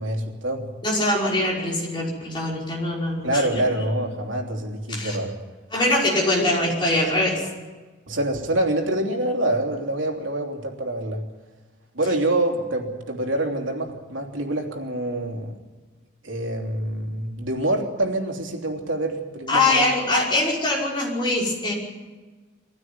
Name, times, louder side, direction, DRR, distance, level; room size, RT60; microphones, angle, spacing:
voice 1, 0.0-0.7 3.2-5.4 6.4-6.5 8.1-11.2 11.9-15.6 16.2-19.8, right 1 dB, 90° right, 2 dB, 3.2 m, -26 dB
voice 2, 0.8-3.6 4.9-5.2 5.7-7.4 19.5-21.7, left 2 dB, 25° left, -4 dB, 5.7 m, -23 dB
22.0 x 16.0 x 9.4 m, 1.3 s
head